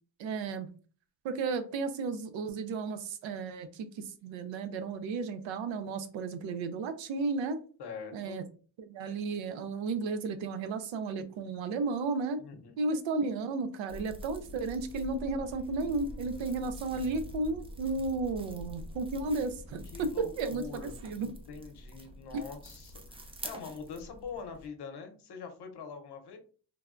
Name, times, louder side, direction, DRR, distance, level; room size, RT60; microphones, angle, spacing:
voice 1, 0.2-0.7 1.2-7.6 8.1-8.4 8.8-12.4 12.8-21.3, right 3 dB, 90° right, 9 dB, 0.6 m, -33 dB
voice 2, 7.8-8.4 12.4-12.8 19.9-26.4, left 5 dB, 60° left, 5 dB, 0.8 m, -44 dB
sound 1, 13.9-24.7, equal, 15° right, 0.4 m, -46 dB
3.3 x 2.2 x 2.4 m, 0.39 s
cardioid pair, 115°, 45 cm